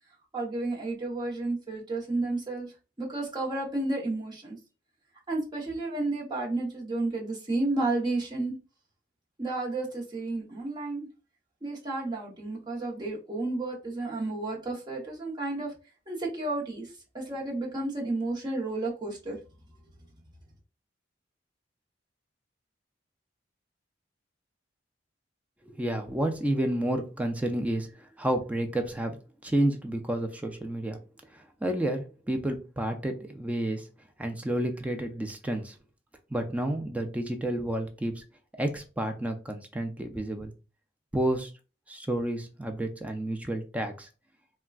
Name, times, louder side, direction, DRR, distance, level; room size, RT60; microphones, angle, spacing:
voice 1, 0.3-4.6 5.3-8.5 9.4-11.1 11.6-15.7 16.1-19.4, right 2 dB, 25° right, -3 dB, 0.8 m, -32 dB
voice 2, 25.6-29.2 29.4-31.0 31.3-33.9 34.2-35.8 36.3-38.2 38.6-40.5 41.1-41.5 41.9-44.1, right 1 dB, 10° right, 5 dB, 0.3 m, -30 dB
3.5 x 2.2 x 2.3 m, 0.32 s
head